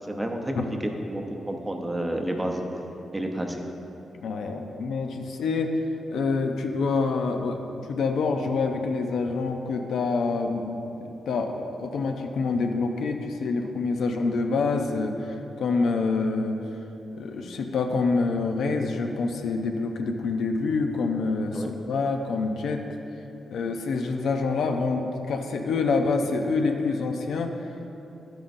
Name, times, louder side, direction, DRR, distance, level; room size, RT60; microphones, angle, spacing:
voice 1, 0.1-0.6 1.0-2.6 3.1-3.6 21.5-21.7, right 1 dB, 15° right, 3 dB, 0.7 m, -30 dB
voice 2, 4.1-5.7 6.1-7.6 7.9-16.6 17.2-22.8 23.5-27.5, left 4 dB, 85° left, 4 dB, 0.6 m, -26 dB
11.0 x 9.0 x 2.6 m, 2.9 s
wide cardioid pair, 130°, 0 cm